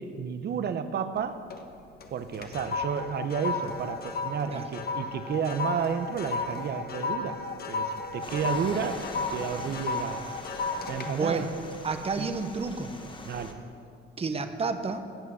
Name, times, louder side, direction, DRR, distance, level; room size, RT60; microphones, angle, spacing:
voice 1, 0.0-1.5 2.1-10.3 10.9-11.5 12.2-12.3 13.2-13.6, right 7 dB, 55° right, 10 dB, 0.8 m, -32 dB
sound 1, 1.2-1.7 2.0-12.6 13.0-13.3, left 3 dB, 50° left, 1.3 m, -34 dB
sound 2, 8.2-13.5, left 2 dB, 25° left, 1.5 m, -42 dB
voice 2, 11.1-11.5 11.8-12.9 14.2-15.0, right 4 dB, 30° right, 8 dB, 0.9 m, -30 dB
17.0 x 5.8 x 7.6 m, 2.4 s
cardioid pair, 90°, 20 cm